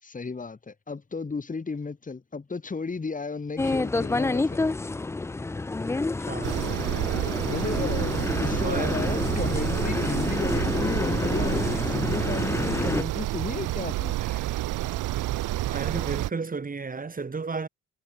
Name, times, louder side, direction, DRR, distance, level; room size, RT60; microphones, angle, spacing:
voice 1, 0.0-4.6 7.5-14.2, left 4 dB, 25° left, 3.3 m, -34 dB
sound 1, 3.6-13.0, left 3 dB, 10° left, 0.3 m, -28 dB
voice 2, 6.1-6.7 8.6-9.0 14.2-14.6 15.7-17.7, right 4 dB, 30° right, 3.1 m, -33 dB
Crickets Chirping, 6.4-16.3, right 16 dB, 90° right, 2.1 m, -29 dB
cardioid pair, 90°, 30 cm